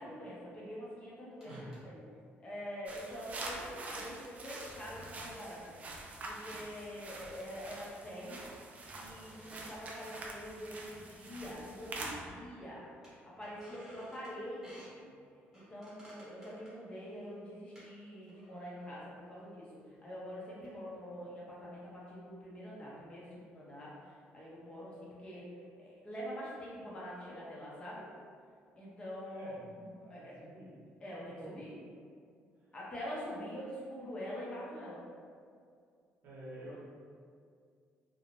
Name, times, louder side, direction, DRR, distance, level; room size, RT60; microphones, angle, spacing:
voice 1, 0.0-1.5 1.8-2.0 2.4-5.6 6.3-8.4 8.9-15.1 15.5-19.7 20.0-25.5 25.8-28.0 28.8-30.3 31.0-31.8 32.7-35.0, equal, 25° left, -6 dB, 0.6 m, -45 dB
sound 1, 1.4-1.8 3.0-3.2 5.0-5.2 5.8-5.9 7.2-7.8 9.1-10.5 11.1-11.2 11.4-11.6 11.9-12.7 13.0-14.4 14.6-15.0 15.5-17.9 18.3-19.1 19.8-20.0 20.6-20.8, right 1 dB, 10° right, 1.0 m, -58 dB
voice 2, 1.4-1.8 29.3-29.6 30.0-30.7 31.2-31.5 36.2-36.8, right 1 dB, 60° right, -6 dB, 0.7 m, -49 dB
sound 2, 2.9-12.1, right 2 dB, 35° right, 0.3 m, -46 dB
2.5 x 2.0 x 2.8 m, 2.2 s
cardioid pair, 145°, 4 cm